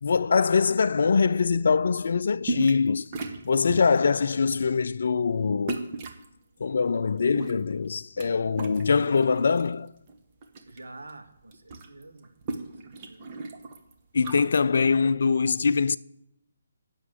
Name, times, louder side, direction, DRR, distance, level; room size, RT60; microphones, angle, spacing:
voice 1, 0.0-3.1 3.4-5.9 6.6-9.9 14.1-16.0, left 5 dB, 60° left, 0.3 m, -23 dB
sound 1, 2.4-2.9 3.1-4.0 4.5-4.7 5.7-6.3 7.1-8.3 8.5-9.7 10.1-10.8 11.1-11.2 11.4-14.5, right 3 dB, 30° right, 1.3 m, -35 dB
voice 2, 10.7-12.3 12.8-13.3, right 2 dB, 70° right, 1.6 m, -47 dB
9.0 x 6.9 x 8.1 m
figure-of-eight pair, 145°, 0 cm